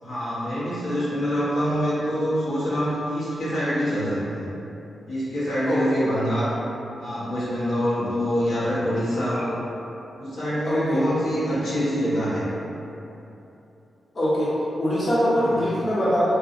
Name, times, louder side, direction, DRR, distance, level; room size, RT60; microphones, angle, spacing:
voice 1, 0.0-4.5 5.1-6.5 7.0-9.6 10.2-12.5 15.4-15.6, equal, 90° left, -11 dB, 0.8 m, -25 dB
voice 2, 5.6-6.0 10.6-11.0 14.1-16.3, equal, 45° left, -9 dB, 0.9 m, -23 dB
2.7 x 2.6 x 2.4 m, 2.9 s
cardioid pair, 70°, 0 cm